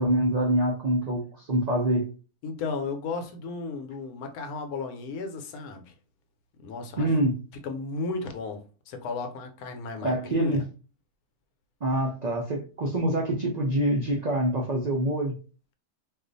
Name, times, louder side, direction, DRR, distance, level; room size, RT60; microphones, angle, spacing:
voice 1, 0.0-2.1 7.0-7.4 10.0-10.6 11.8-15.3, right 1 dB, 80° right, 0.3 m, -25 dB
voice 2, 2.4-5.9 6.6-7.1 7.6-10.6, left 4 dB, 80° left, 1.1 m, -34 dB
2.4 x 2.4 x 3.9 m
omnidirectional pair, 1.6 m